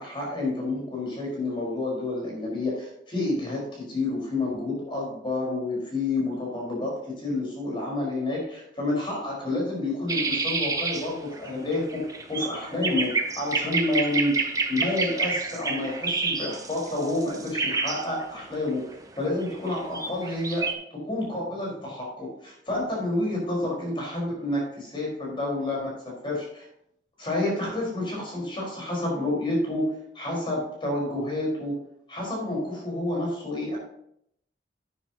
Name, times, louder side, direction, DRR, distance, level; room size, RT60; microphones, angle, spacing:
voice 1, 0.0-12.0 12.3-14.3 14.7-18.8 19.2-25.9 26.2-26.6 27.2-29.9 30.1-31.7 32.1-33.8, left 2 dB, 30° left, -3 dB, 4.9 m, -29 dB
sound 1, 10.1-20.7, right 4 dB, 20° right, 1.0 m, -29 dB
12.0 x 9.7 x 3.0 m, 0.72 s
head